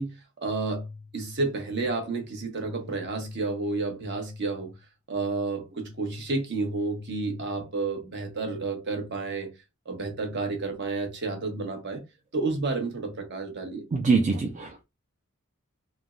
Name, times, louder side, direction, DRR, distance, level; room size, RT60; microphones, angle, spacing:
voice 1, 0.0-4.7 5.1-9.5 9.9-12.0 12.3-13.8, right 3 dB, 55° right, 0.9 m, -31 dB
voice 2, 13.9-14.8, right 4 dB, 35° right, 0.4 m, -24 dB
3.3 x 2.0 x 2.4 m
head